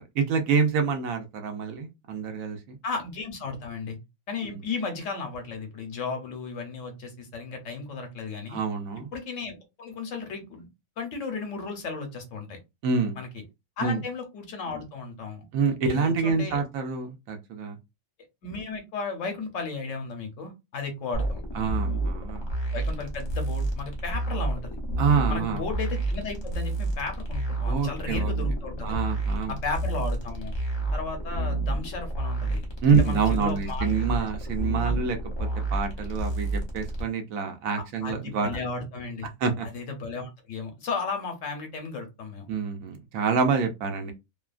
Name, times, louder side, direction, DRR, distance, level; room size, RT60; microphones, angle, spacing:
voice 1, 0.2-2.8 4.4-4.6 8.5-9.1 12.8-13.2 13.8-14.0 15.5-17.8 21.5-22.5 25.0-25.6 27.6-28.3 28.8-29.6 32.8-38.6 39.4-39.7 42.5-44.1, right 5 dB, 75° right, 1.0 m, -27 dB
voice 2, 2.8-4.0 4.3-8.6 9.1-10.7 11.0-12.6 13.2-13.3 13.8-15.4 15.8-16.6 18.4-21.4 22.7-24.8 25.3-29.0 29.5-30.5 30.9-32.6 32.9-33.9 34.2-34.3 34.8-34.9 37.7-39.3 39.6-42.5, left 4 dB, 65° left, 1.1 m, -35 dB
sound 1, 21.1-37.0, right 2 dB, 40° left, 0.4 m, -30 dB
2.8 x 2.3 x 2.3 m
omnidirectional pair, 1.5 m